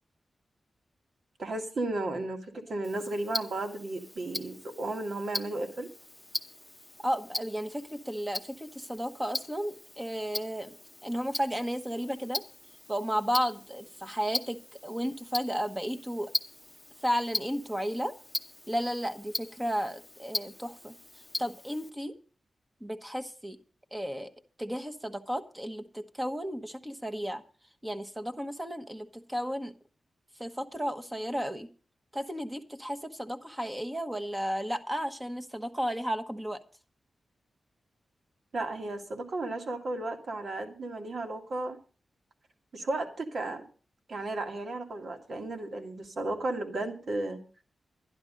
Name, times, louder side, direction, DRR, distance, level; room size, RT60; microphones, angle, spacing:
voice 1, 1.4-5.9 38.5-41.8 42.7-43.6 44.1-47.4, right 2 dB, 65° right, 4 dB, 2.2 m, -34 dB
Tick-tock, 2.8-21.9, left 1 dB, 10° left, 0.9 m, -40 dB
voice 2, 7.0-10.8 11.0-12.4 12.9-16.3 17.0-18.1 18.7-20.9 21.4-22.1 22.8-23.6 23.9-24.3 24.6-27.4 27.8-29.7 30.4-31.7 32.1-36.6, equal, 10° right, 8 dB, 1.2 m, -33 dB
11.5 x 11.5 x 5.2 m, 0.37 s
cardioid pair, 80°, 0 cm